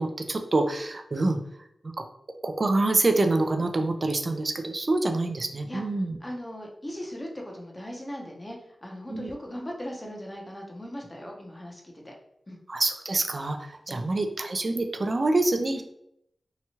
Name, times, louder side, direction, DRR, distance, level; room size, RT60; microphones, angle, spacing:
voice 1, 0.0-1.4 2.4-6.2 9.1-9.3 12.7-15.8, right 2 dB, 45° right, 5 dB, 0.4 m, -26 dB
voice 2, 6.2-12.1 12.5-12.6 13.9-14.1, equal, 20° left, 0 dB, 0.7 m, -39 dB
2.9 x 2.3 x 2.8 m, 0.76 s
wide cardioid pair, 70°, 0 cm